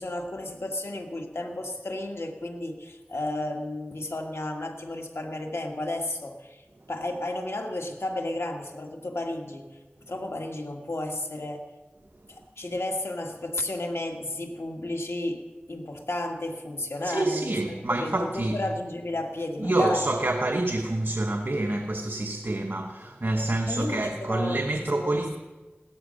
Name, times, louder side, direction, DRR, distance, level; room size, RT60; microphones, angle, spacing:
voice 1, 0.0-9.7 10.1-11.7 12.3-15.4 15.7-20.1 23.7-25.2, left 1 dB, 85° left, 1.7 m, -33 dB
voice 2, 17.0-18.6 19.6-25.4, right 2 dB, 55° right, 1.0 m, -27 dB
17.0 x 12.5 x 6.4 m
wide cardioid pair, 45°, 4 cm